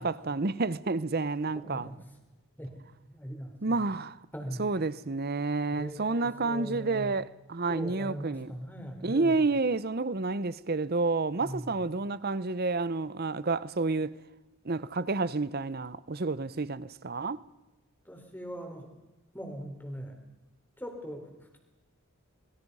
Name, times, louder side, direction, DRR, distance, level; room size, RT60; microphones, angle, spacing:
voice 1, 0.0-1.9 3.6-4.2 4.6-8.5 9.0-14.2 14.6-17.4, right 3 dB, 45° right, 0.7 m, -30 dB
voice 2, 1.6-2.0 2.6-2.8 3.1-3.9 4.3-4.7 5.7-7.1 7.7-9.4 11.4-11.7 18.1-18.9 19.3-20.2 20.8-21.6, equal, 10° left, 3.8 m, -40 dB
26.0 x 22.0 x 5.5 m
head